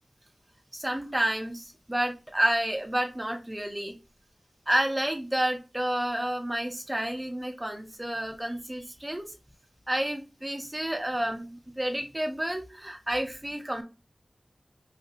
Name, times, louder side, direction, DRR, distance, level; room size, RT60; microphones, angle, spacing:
voice 1, 0.7-3.9 4.7-9.3 9.9-13.8, right 1 dB, 20° right, 5 dB, 0.7 m, -30 dB
3.2 x 2.8 x 2.8 m, 0.29 s
wide cardioid pair, 60°, 0 cm